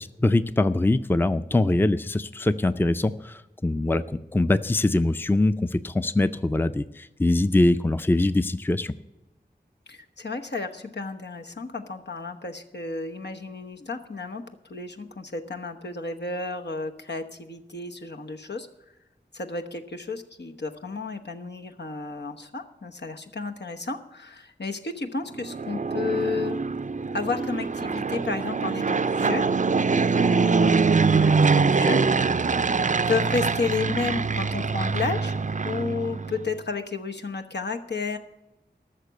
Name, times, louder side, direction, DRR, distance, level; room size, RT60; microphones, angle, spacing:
voice 1, 0.2-8.9, left 2 dB, 10° left, 12 dB, 0.4 m, -23 dB
voice 2, 9.9-14.4 14.7-18.7 19.3-26.6 27.1-32.3 33.1-35.4 35.6-38.2, left 4 dB, 75° left, 4 dB, 1.0 m, -32 dB
Fixed-wing aircraft airplane, 25.4-36.5, right 4 dB, 45° right, 0.4 m, -23 dB
13.0 x 6.7 x 8.0 m, 0.95 s
wide cardioid pair, 55°, 18 cm